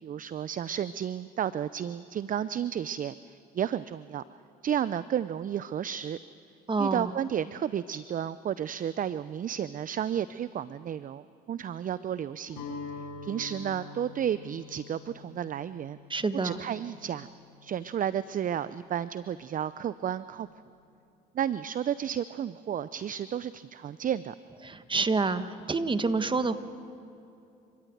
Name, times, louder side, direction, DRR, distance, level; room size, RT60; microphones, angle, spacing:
voice 1, 0.0-4.2 4.6-6.2 6.8-12.6 13.2-16.0 16.4-17.3 17.6-20.5 21.3-24.3, right 9 dB, 40° right, 16 dB, 0.6 m, -32 dB
voice 2, 6.7-7.1 16.1-16.6 24.6-25.4 25.7-26.6, right 4 dB, 25° right, 11 dB, 1.4 m, -27 dB
Guitar, 12.5-18.5, left 3 dB, 90° left, 6.2 m, -45 dB
28.0 x 15.5 x 9.3 m, 2.8 s
hypercardioid pair, 65°, 21 cm